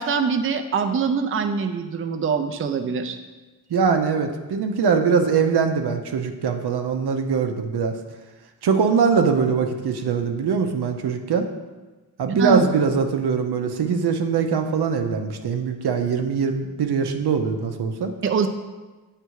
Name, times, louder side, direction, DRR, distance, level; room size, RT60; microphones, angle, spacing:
voice 1, 0.0-3.2 12.3-12.6 18.2-18.5, right 6 dB, 35° right, 6 dB, 0.4 m, -23 dB
voice 2, 3.7-7.9 8.6-11.5 12.2-18.1, right 5 dB, 80° right, 5 dB, 0.7 m, -22 dB
8.0 x 3.3 x 4.6 m, 1.2 s
wide cardioid pair, 90°, 38 cm